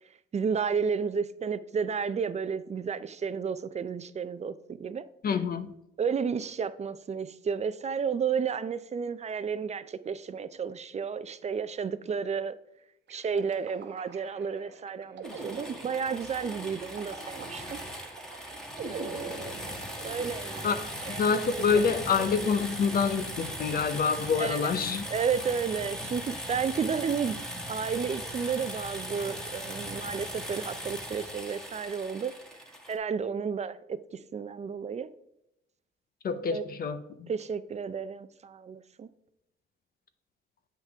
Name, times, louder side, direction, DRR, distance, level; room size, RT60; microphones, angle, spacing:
voice 1, 0.3-4.5 4.8-5.0 6.0-12.5 13.1-17.8 18.9-19.6 20.0-21.2 21.7-21.8 24.4-24.6 25.1-27.4 27.7-32.3 32.9-34.0 34.3-35.1 36.5-36.6 37.3-39.1, right 6 dB, 35° right, 0.5 m, -32 dB
voice 2, 5.2-5.7 20.6-20.7 21.1-25.0 36.2-37.3, left 5 dB, 50° left, 0.7 m, -27 dB
sound 1, 13.1-23.5, right 4 dB, 60° right, 1.2 m, -45 dB
sound 2, 15.2-33.0, equal, 5° left, 1.5 m, -39 dB
7.8 x 5.7 x 3.5 m
cardioid pair, 90°, 20 cm